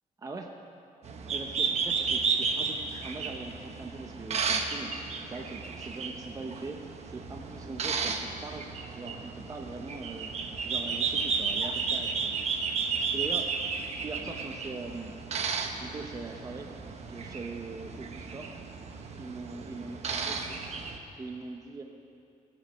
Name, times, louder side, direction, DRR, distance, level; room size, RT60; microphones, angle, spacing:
voice 1, 0.2-0.5 1.3-8.7 8.9-10.3 10.6-12.8 13.1-13.6 14.0-15.1 15.8-16.7 17.1-18.5 19.2-20.6 21.2-21.8, right 3 dB, 25° right, 3 dB, 0.6 m, -41 dB
sound 1, 1.0-21.0, right 5 dB, 50° right, 1.0 m, -33 dB
21.5 x 8.1 x 5.5 m, 2.7 s
wide cardioid pair, 160°, 14 cm